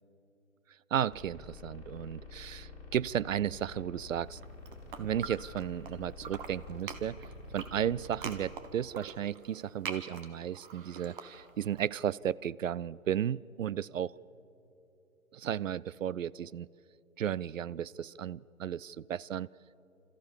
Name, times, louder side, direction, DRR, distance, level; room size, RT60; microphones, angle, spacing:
voice 1, 0.9-4.4 5.0-7.2 7.5-14.1 15.3-16.7 17.2-19.5, right 9 dB, 70° right, 20 dB, 0.5 m, -34 dB
sound 1, 1.1-8.5, left 3 dB, 20° left, 4.6 m, -48 dB
sound 2, 4.3-5.9 6.2-11.8, right 6 dB, 40° right, 1.5 m, -44 dB
27.0 x 14.0 x 7.2 m, 2.9 s
figure-of-eight pair, 135°, 41 cm